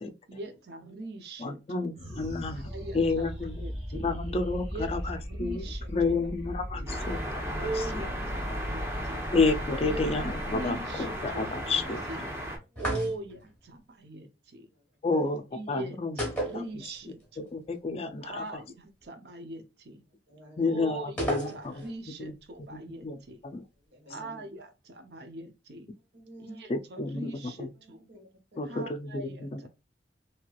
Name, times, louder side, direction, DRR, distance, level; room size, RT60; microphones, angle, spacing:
voice 1, 0.3-1.9 2.5-3.2 3.6-4.1 4.7-6.3 6.8-7.0 7.5-9.3 9.8-12.3 12.8-14.7 15.5-17.2 18.2-20.0 20.7-23.4 24.1-25.9 26.4-28.0 28.6-29.7, right 2 dB, 60° right, 0.6 m, -41 dB
voice 2, 1.4-2.7 2.9-3.6 4.0-5.6 5.9-7.5 9.3-12.0 15.0-15.4 15.7-16.2 16.5-16.6 17.5-18.4 20.6-21.8 22.2-22.3 23.0-23.2 23.4-23.6 26.7-27.3 27.6-27.7 28.6-29.7, left 3 dB, 35° left, 0.4 m, -30 dB
sound 1, 1.9-12.6, equal, 35° right, 1.4 m, -38 dB
voice 3, 2.5-3.0 5.6-5.7 12.7-12.8 15.1-15.4 20.3-20.9 23.9-24.4 26.1-26.6 27.8-28.9, equal, 80° right, 1.4 m, -51 dB
sound 2, 6.9-12.6, equal, 15° right, 0.8 m, -36 dB
sound 3, 12.8-13.5 16.2-17.2 17.5-17.6 21.2-22.0, equal, 10° left, 1.2 m, -32 dB
3.1 x 2.8 x 2.3 m
head